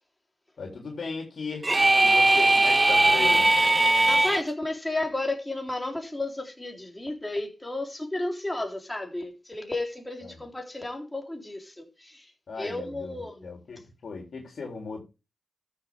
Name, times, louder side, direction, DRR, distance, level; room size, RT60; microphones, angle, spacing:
voice 1, 0.6-1.7 2.0-3.5 10.2-10.3 12.5-13.1 13.4-15.0, left 4 dB, 70° left, 3.4 m, -37 dB
sound 1, 1.6-4.4, right 2 dB, 25° right, 0.7 m, -20 dB
voice 2, 3.9-12.3 12.6-13.5, left 2 dB, 15° left, 3.7 m, -33 dB
13.5 x 7.0 x 3.6 m
cardioid pair, 45°, 0 cm